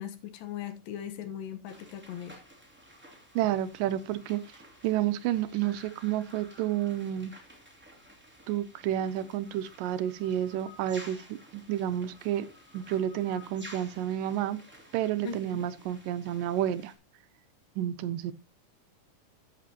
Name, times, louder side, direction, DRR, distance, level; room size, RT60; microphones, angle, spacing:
voice 1, 0.0-2.4 15.2-15.6, left 9 dB, 90° left, 2.9 m, -39 dB
sound 1, 1.6-16.9, equal, 5° right, 2.4 m, -53 dB
voice 2, 3.4-4.4 4.8-7.3 8.5-12.5 12.7-14.6 14.9-16.9 17.8-18.3, right 11 dB, 80° right, 2.4 m, -30 dB
13.5 x 8.4 x 2.9 m
omnidirectional pair, 3.8 m